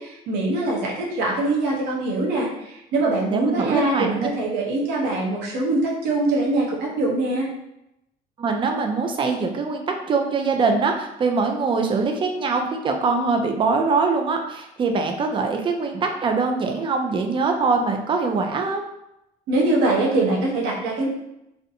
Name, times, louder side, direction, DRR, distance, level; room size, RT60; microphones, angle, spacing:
voice 1, 0.0-7.5 19.5-21.1, right 2 dB, 80° right, -3 dB, 0.8 m, -23 dB
voice 2, 3.3-4.3 8.4-18.8, right 4 dB, 30° right, 3 dB, 0.4 m, -23 dB
2.6 x 2.1 x 2.7 m, 0.85 s
cardioid pair, 110°, 17 cm